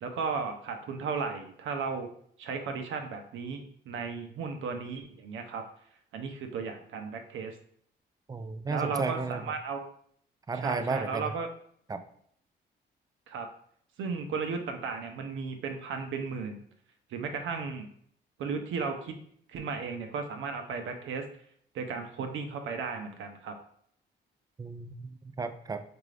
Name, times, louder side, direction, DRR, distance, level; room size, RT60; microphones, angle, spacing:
voice 1, 0.0-2.1 2.4-5.6 6.1-7.5 8.7-9.8 10.5-11.5 13.3-13.5 14.0-16.6 17.1-17.9 18.4-19.2 19.5-21.2 21.7-23.6, right 5 dB, 75° right, 5 dB, 0.6 m, -35 dB
voice 2, 8.3-9.4 10.5-11.3 11.9-12.0 24.6-25.8, right 4 dB, 20° right, 9 dB, 0.3 m, -33 dB
4.6 x 2.5 x 3.2 m, 0.64 s
cardioid pair, 90°, 20 cm